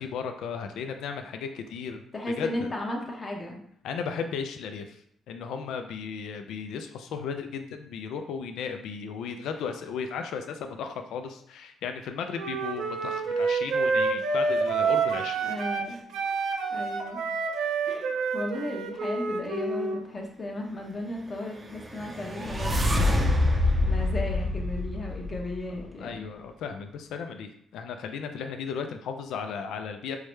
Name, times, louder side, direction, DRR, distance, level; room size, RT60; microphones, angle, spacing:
voice 1, 0.0-2.7 3.8-15.4 26.0-30.2, left 6 dB, 80° left, 6 dB, 0.3 m, -35 dB
voice 2, 2.1-3.6 15.4-16.0 16.7-17.2 17.9-23.2 23.8-26.3, left 1 dB, 30° left, 0 dB, 0.9 m, -35 dB
Wind instrument woodwind instrument, 12.3-15.9 16.1-20.0, right 4 dB, 80° right, 0.5 m, -28 dB
sound 1, 21.6-25.8, left 1 dB, 25° right, 0.5 m, -26 dB
4.6 x 2.1 x 3.1 m, 0.68 s
cardioid pair, 90°, 0 cm